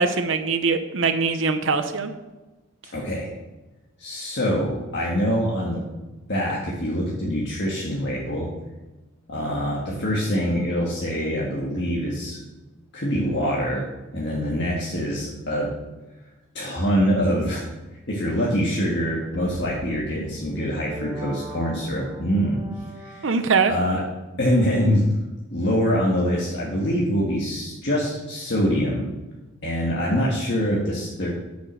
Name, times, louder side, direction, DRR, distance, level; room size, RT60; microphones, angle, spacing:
voice 1, 0.0-2.1 23.2-23.7, right 4 dB, 70° right, 8 dB, 0.7 m, -22 dB
voice 2, 2.9-3.3 4.0-5.8 6.3-8.5 9.3-12.4 12.9-13.8 14.1-15.7 16.5-17.6 18.1-22.6 23.0-23.3 23.7-24.0 24.4-25.0 25.5-29.1 29.6-31.3, equal, 60° left, -4 dB, 1.7 m, -24 dB
sound 1, 19.3-23.8, right 1 dB, 15° right, 1.2 m, -40 dB
9.5 x 6.0 x 6.3 m, 1.1 s
head